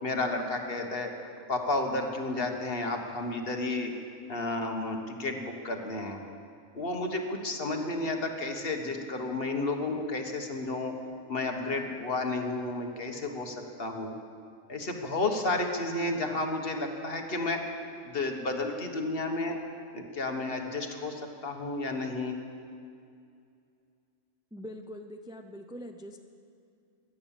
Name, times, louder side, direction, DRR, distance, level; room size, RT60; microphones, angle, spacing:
voice 1, 0.0-1.1 1.5-3.9 4.3-6.2 6.7-10.9 11.3-14.1 14.7-17.6 18.0-19.6 19.9-22.4, left 2 dB, 50° left, 3 dB, 1.6 m, -32 dB
voice 2, 24.5-26.2, equal, 5° right, 5 dB, 0.5 m, -43 dB
17.0 x 11.5 x 7.2 m, 2.4 s
omnidirectional pair, 1.3 m